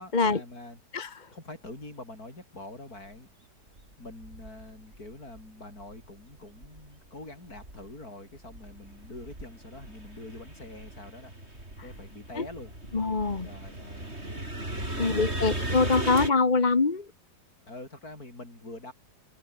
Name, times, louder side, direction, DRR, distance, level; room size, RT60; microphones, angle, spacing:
voice 1, 0.0-0.8 1.3-3.3 4.0-12.7 13.4-14.1 14.7-15.9 17.6-18.9, left 2 dB, 55° left, 7.9 m, -45 dB
voice 2, 0.9-1.3 12.4-12.5 12.9-13.5 15.0-17.1, left 4 dB, 30° left, 1.3 m, -24 dB
sound 1, 3.1-3.2 3.8-5.4 5.8-7.1 7.4-16.3, right 1 dB, 35° right, 8.1 m, -37 dB
open air
omnidirectional pair, 1.9 m